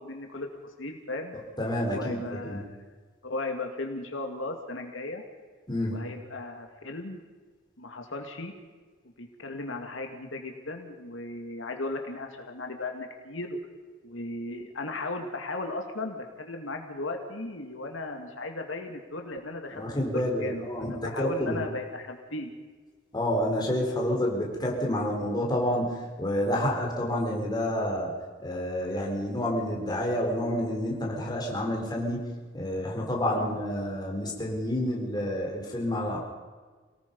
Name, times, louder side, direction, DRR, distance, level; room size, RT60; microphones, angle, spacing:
voice 1, 0.0-1.4 1.8-2.8 3.2-5.2 5.9-7.2 7.8-8.5 9.2-13.6 14.0-19.8 20.1-22.5 33.2-33.6, left 2 dB, 85° left, 3 dB, 2.3 m, -36 dB
voice 2, 1.6-2.6 5.7-6.0 19.7-21.6 23.1-28.1 28.4-36.2, left 1 dB, 20° left, -1 dB, 4.3 m, -29 dB
28.0 x 18.5 x 5.4 m, 1.4 s
head